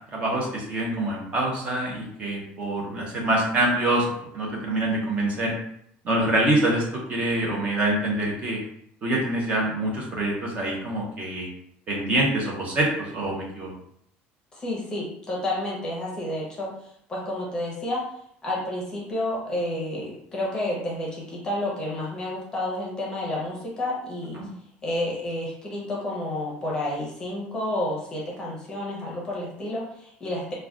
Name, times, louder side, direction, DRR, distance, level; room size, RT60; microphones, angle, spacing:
voice 1, 0.0-4.1 4.3-5.5 6.0-8.6 9.0-11.5 11.9-13.7 24.4-24.5, right 1 dB, 30° right, -2 dB, 0.6 m, -25 dB
voice 2, 14.5-18.1 18.4-24.4 24.8-30.5, left 1 dB, 15° left, -4 dB, 0.7 m, -30 dB
2.3 x 2.2 x 3.6 m, 0.70 s
cardioid pair, 170°, 4 cm